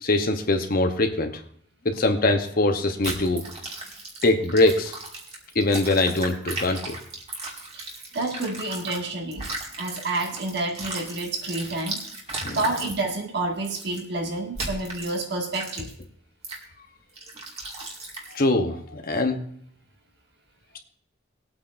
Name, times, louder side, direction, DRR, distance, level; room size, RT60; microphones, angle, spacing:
voice 1, 0.0-1.3 1.8-3.4 4.2-4.9 5.5-7.0 12.4-12.6 18.3-19.4, left 2 dB, 45° left, 5 dB, 0.9 m, -22 dB
sound 1, 3.0-9.0 9.3-13.0 13.6-14.0 14.5-15.2 15.5-16.0 16.4-16.6 17.2-18.4, right 2 dB, 30° right, 2.2 m, -36 dB
voice 2, 8.1-9.4 9.8-12.0 12.5-15.9, right 2 dB, 55° right, 2 dB, 1.9 m, -29 dB
20.5 x 8.6 x 2.6 m, 0.62 s
head